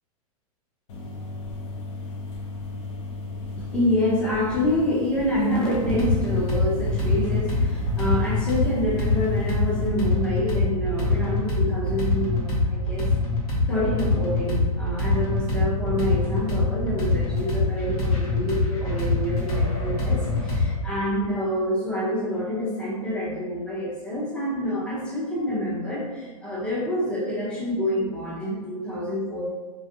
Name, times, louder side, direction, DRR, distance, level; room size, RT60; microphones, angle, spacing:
sound 1, 0.9-9.9, left 3 dB, 45° left, 0.6 m, -36 dB
voice 1, 3.6-13.1 13.7-29.5, left 1 dB, 5° left, -6 dB, 0.5 m, -27 dB
sound 2, 5.7-20.8, left 2 dB, 90° left, 1.1 m, -24 dB
2.5 x 2.4 x 2.7 m, 1.3 s
hypercardioid pair, 150°, 19 cm